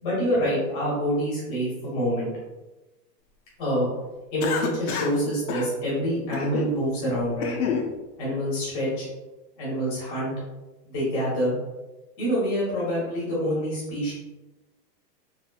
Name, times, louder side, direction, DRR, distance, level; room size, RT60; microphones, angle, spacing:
voice 1, 0.0-2.3 3.6-3.9 4.3-7.6 8.2-9.1 9.6-10.3 10.8-11.6 12.2-14.1, equal, 20° left, -7 dB, 0.9 m, -26 dB
Cough, 4.4-5.2 5.5-5.7 6.3-6.7 7.2-7.9, left 6 dB, 65° left, 0.6 m, -29 dB
3.1 x 2.9 x 2.2 m, 1.1 s
supercardioid pair, 180°, 50 cm